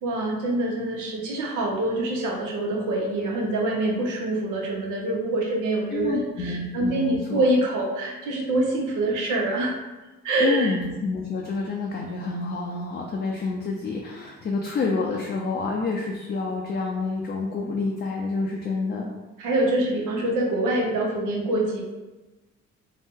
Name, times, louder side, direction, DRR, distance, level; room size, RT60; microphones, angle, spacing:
voice 1, 0.0-9.7 10.2-10.7 19.4-21.8, right 1 dB, 85° right, -1 dB, 0.7 m, -25 dB
voice 2, 5.9-7.4 10.4-19.1, left 3 dB, 35° left, -1 dB, 0.4 m, -28 dB
2.7 x 2.1 x 3.5 m, 1.1 s
cardioid pair, 90°, 30 cm